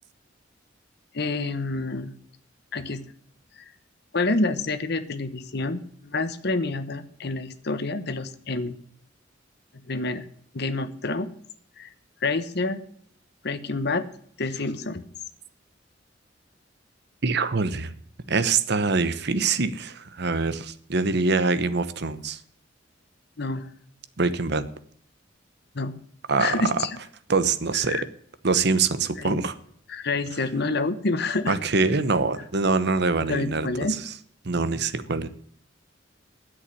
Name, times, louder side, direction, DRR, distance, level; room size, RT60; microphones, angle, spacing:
voice 1, 1.1-2.1 2.7-3.0 3.6-3.7 4.1-8.8 9.9-10.3 10.5-11.3 11.8-11.9 12.2-12.8 13.4-14.1 14.4-15.0 23.4-23.7 25.7-26.0 26.4-26.9 27.9-28.0 29.2-29.4 29.9-31.6 33.2-34.0, left 3 dB, 60° left, 10 dB, 1.2 m, -28 dB
voice 2, 17.2-17.9 18.3-22.4 24.2-24.6 26.3-26.6 27.3-28.0 28.4-29.5 31.5-34.1 34.4-35.3, right 4 dB, 60° right, 13 dB, 1.0 m, -24 dB
10.0 x 8.2 x 9.5 m, 0.62 s
head